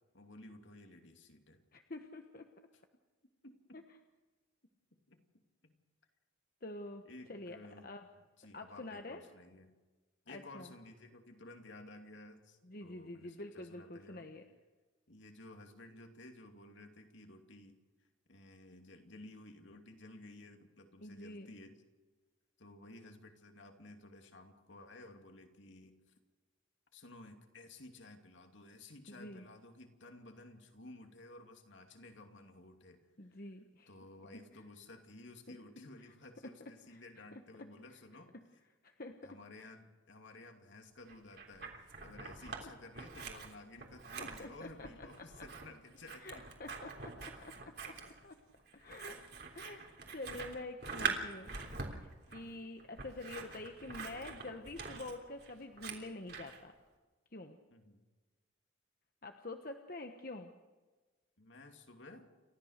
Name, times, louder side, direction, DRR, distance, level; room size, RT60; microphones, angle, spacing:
voice 1, 0.1-1.6 3.4-3.8 5.1-5.2 5.6-5.7 7.0-7.9 8.4-9.7 10.2-14.3 15.1-17.8 18.3-21.8 22.6-26.1 26.9-33.4 33.9-38.3 39.2-46.4 49.1-49.7 52.3-52.6 57.7-58.0 61.4-62.3, left 2 dB, 65° left, 4 dB, 2.7 m, -55 dB
voice 2, 1.7-2.5 3.7-3.8 6.6-7.0 7.3-7.6 7.8-8.1 8.5-9.2 10.3-10.7 12.6-14.4 21.0-21.5 29.2-29.4 33.2-33.9 34.3-34.6 35.5-35.6 36.0-36.1 36.9-37.0 37.6-37.7 38.3-38.4 38.8-39.7 44.2-45.3 46.2-47.5 47.8-47.9 48.2-48.4 48.7-49.2 49.5-51.6 51.9-56.7 57.3-57.6 59.2-60.5, left 2 dB, 45° left, 5 dB, 1.2 m, -47 dB
Scissors, 41.1-42.6 42.9-56.6, right 5 dB, 50° right, 3.4 m, -44 dB
29.5 x 14.0 x 6.6 m, 1.3 s
head